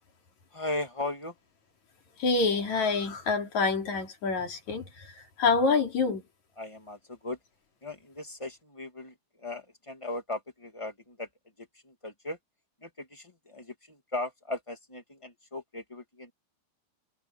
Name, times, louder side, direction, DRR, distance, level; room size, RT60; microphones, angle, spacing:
voice 1, 0.5-1.3 6.6-7.4 7.8-11.3 11.6-12.4 12.8-16.3, left 2 dB, 10° left, 1.4 m, -38 dB
voice 2, 2.2-6.2, left 4 dB, 45° left, 4.1 m, -27 dB
omnidirectional pair, 4.8 m